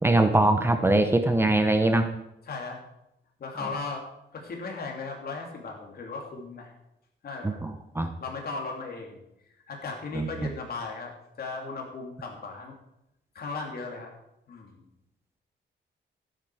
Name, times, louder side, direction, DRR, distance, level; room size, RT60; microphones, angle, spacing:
voice 1, 0.0-2.1 3.6-3.7 7.4-8.1 10.1-10.5, right 2 dB, 10° right, 7 dB, 0.7 m, -23 dB
voice 2, 2.5-2.8 3.4-4.1 4.3-6.7 7.2-7.7 8.2-9.2 9.7-12.7 13.3-14.1 14.5-14.8, left 4 dB, 55° left, 1 dB, 2.9 m, -37 dB
12.5 x 10.5 x 4.8 m, 0.84 s
wide cardioid pair, 165°, 19 cm